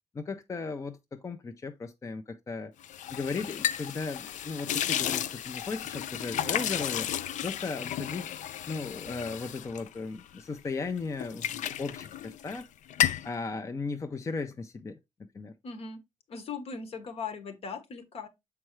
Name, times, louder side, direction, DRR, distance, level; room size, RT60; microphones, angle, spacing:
voice 1, 0.1-2.7 3.1-7.1 7.4-8.3 8.7-12.7 13.2-15.5, left 4 dB, 25° left, 0.5 m, -36 dB
sound 1, 2.8-10.6 11.0-12.6 12.9-13.3, left 11 dB, 80° left, 0.4 m, -33 dB
sound 2, 6.2-7.2, right 11 dB, 90° right, 0.6 m, -51 dB
voice 2, 15.6-16.0 16.3-18.3, left 5 dB, 55° left, 1.1 m, -39 dB
7.5 x 4.6 x 3.1 m
wide cardioid pair, 170°, 12 cm